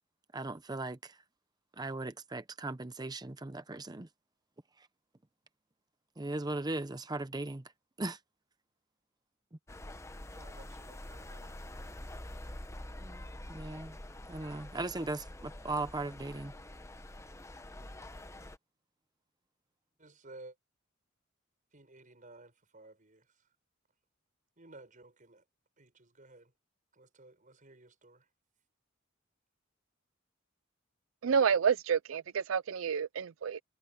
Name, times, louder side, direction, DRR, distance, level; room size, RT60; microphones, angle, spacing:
voice 1, 0.3-1.1 1.8-4.1 6.2-7.6 8.0-8.2 13.0-13.2 13.5-14.0 14.3-16.5, right 2 dB, 20° right, 0.7 m, -38 dB
sound 1, 9.7-18.6, left 1 dB, 15° left, 1.0 m, -46 dB
voice 2, 10.3-11.5 20.0-20.6 21.7-23.5 24.6-25.4 25.8-26.5 26.9-28.3, right 2 dB, 40° right, 6.5 m, -55 dB
voice 3, 31.2-33.6, right 7 dB, 90° right, 0.5 m, -29 dB
head